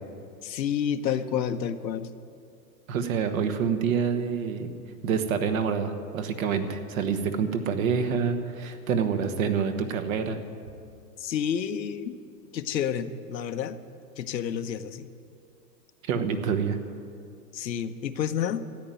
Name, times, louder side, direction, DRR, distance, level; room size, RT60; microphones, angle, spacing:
voice 1, 0.4-2.1 11.2-12.2 12.5-13.8 14.2-15.1 17.5-18.6, left 8 dB, 85° left, 9 dB, 1.0 m, -29 dB
voice 2, 2.9-4.7 5.0-10.4 16.1-16.8, right 6 dB, 55° right, 8 dB, 1.4 m, -27 dB
13.5 x 9.3 x 9.2 m, 2.4 s
hypercardioid pair, 130°, 50 cm